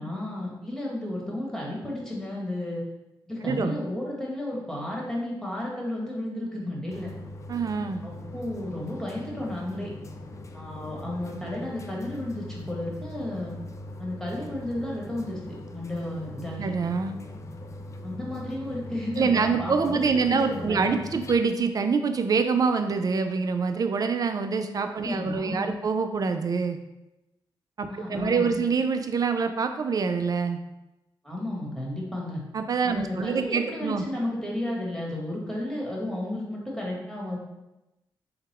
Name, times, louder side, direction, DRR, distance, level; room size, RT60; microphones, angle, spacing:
voice 1, 0.0-2.8 3.3-7.1 8.0-9.9 10.5-13.5 14.0-15.4 15.7-16.7 18.0-21.0 25.0-25.7 27.9-28.6 31.2-32.4 32.8-37.4, left 1 dB, 5° left, -3 dB, 1.3 m, -33 dB
sound 1, 6.9-21.4, left 1 dB, 35° left, 0.4 m, -41 dB
voice 2, 7.5-8.0 16.6-17.1 19.2-26.8 27.8-30.6 32.5-34.0, right 5 dB, 45° right, 7 dB, 0.4 m, -25 dB
3.9 x 2.1 x 4.1 m, 0.95 s
cardioid pair, 70°, 9 cm